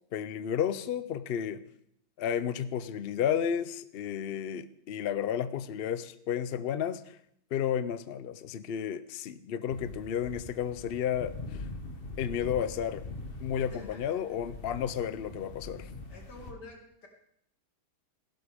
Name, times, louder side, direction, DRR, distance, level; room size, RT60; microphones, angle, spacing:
voice 1, 0.1-1.6 2.2-7.2 7.5-11.7 12.2-13.0 13.4-15.9, left 9 dB, 65° left, 13 dB, 0.6 m, -32 dB
sound 1, 9.7-16.5, left 3 dB, 40° left, 1.2 m, -43 dB
voice 2, 13.6-14.6 16.1-17.1, left 3 dB, 90° left, 1 dB, 2.8 m, -49 dB
16.0 x 12.0 x 3.6 m, 0.70 s
omnidirectional pair, 1.7 m